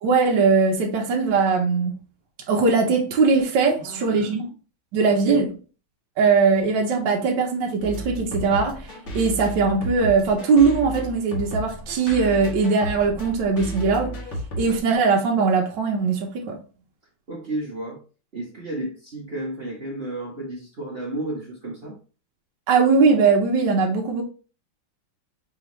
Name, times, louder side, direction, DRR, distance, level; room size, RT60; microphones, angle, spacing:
voice 1, 0.0-1.9 2.5-4.5 4.9-5.4 6.2-14.2 14.6-16.6 22.7-24.2, right 4 dB, 65° right, 1.2 m, -20 dB
voice 2, 3.8-4.3 5.0-5.4 17.3-18.0 18.3-22.0, right 1 dB, 50° right, 0.7 m, -32 dB
sound 1, 7.8-14.8, equal, 45° left, 1.0 m, -33 dB
4.9 x 2.8 x 3.0 m
omnidirectional pair, 2.4 m